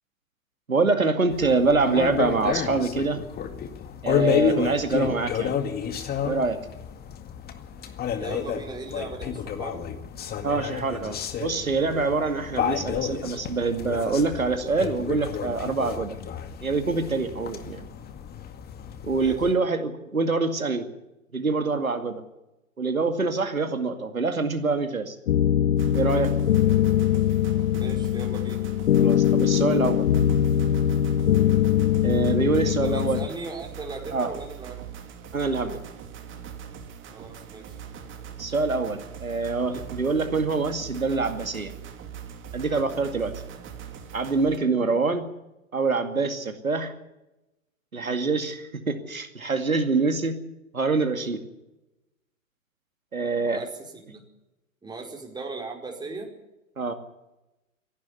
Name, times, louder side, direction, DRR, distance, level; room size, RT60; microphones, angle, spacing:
voice 1, 0.7-3.2 4.0-5.5 6.2-6.6 10.4-16.1 16.6-17.9 19.0-20.9 21.3-22.2 22.8-25.2 25.9-26.3 29.0-30.1 32.0-33.2 34.1-34.3 35.3-35.8 38.4-41.7 42.5-43.3 44.1-45.2 45.7-46.9 47.9-50.3 50.7-51.4 53.1-53.6 56.8-56.9, right 4 dB, 90° right, 7 dB, 2.4 m, -25 dB
sound 1, 1.3-19.5, left 8 dB, 25° left, 2.1 m, -31 dB
voice 2, 8.2-9.9 19.1-19.4 27.7-28.6 32.6-34.8 37.1-37.8 53.4-53.7 53.9-54.2 54.8-56.3, right 3 dB, 10° right, 1 dB, 4.8 m, -38 dB
sound 2, 25.3-33.3, left 10 dB, 65° left, 0.8 m, -22 dB
sound 3, 25.8-44.6, right 8 dB, 30° right, 3.1 m, -41 dB
26.0 x 12.0 x 9.7 m, 0.96 s
figure-of-eight pair, 105°, 40 cm